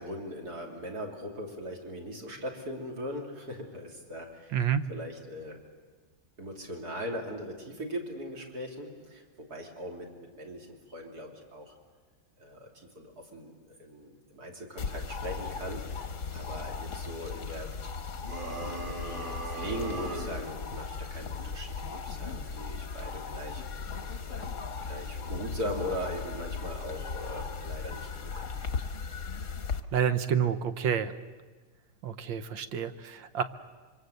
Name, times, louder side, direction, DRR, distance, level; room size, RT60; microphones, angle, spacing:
voice 1, 0.0-4.6 4.9-5.6 6.4-11.7 12.4-16.1 16.3-17.7 18.5-23.6 24.3-28.5, equal, 50° right, 1 dB, 3.7 m, -40 dB
sound 1, 14.8-29.8, left 5 dB, 45° left, 1.2 m, -37 dB
sound 2, 18.2-20.4, right 2 dB, 25° right, 3.3 m, -38 dB
voice 2, 29.9-31.1 32.0-33.4, right 8 dB, 70° right, 12 dB, 1.7 m, -28 dB
26.0 x 24.0 x 8.0 m, 1.4 s
omnidirectional pair, 2.2 m